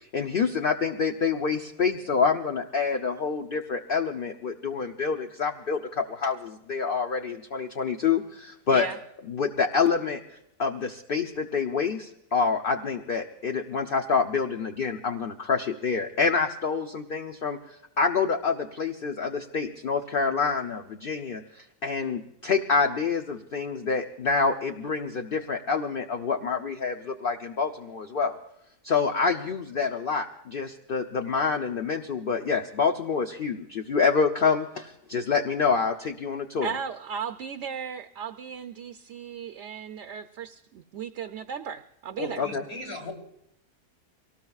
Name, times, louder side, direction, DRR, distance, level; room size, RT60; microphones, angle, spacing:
voice 1, 0.1-8.9 9.3-10.2 10.6-28.4 28.8-36.7 42.4-42.6, left 5 dB, 45° left, 4 dB, 0.8 m, -27 dB
voice 2, 36.6-42.4, right 7 dB, 60° right, 6 dB, 0.8 m, -36 dB
voice 3, 42.2-43.1, left 2 dB, 80° left, 1 dB, 4.1 m, -36 dB
24.5 x 19.0 x 2.4 m, 0.80 s
omnidirectional pair, 1.6 m